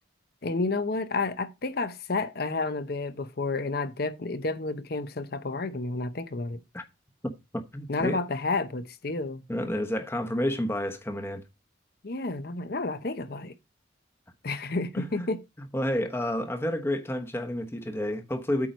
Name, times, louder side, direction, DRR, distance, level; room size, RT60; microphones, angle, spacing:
voice 1, 0.4-6.6 7.9-9.4 12.0-13.5 14.4-15.4, left 3 dB, 55° left, 0.8 m, -30 dB
voice 2, 7.5-8.2 9.5-11.4 14.9-15.3 15.7-18.7, left 1 dB, 15° left, 1.0 m, -30 dB
8.6 x 4.6 x 5.2 m
head